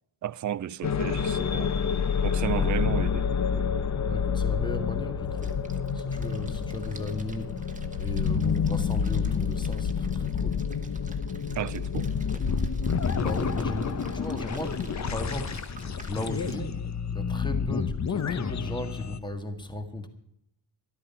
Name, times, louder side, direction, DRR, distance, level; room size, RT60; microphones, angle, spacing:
voice 1, 0.2-1.7 2.2-3.3 11.6-12.1, right 10 dB, 45° right, 0.5 m, -33 dB
sound 1, 0.8-19.2, left 6 dB, 40° left, 0.9 m, -28 dB
voice 2, 4.0-5.6 5.9-10.6 13.1-20.1, left 1 dB, 10° left, 1.7 m, -36 dB
Splash splatter, 5.2-16.6, right 3 dB, 20° right, 1.5 m, -51 dB
13.0 x 12.5 x 5.7 m
wide cardioid pair, 125°, 42 cm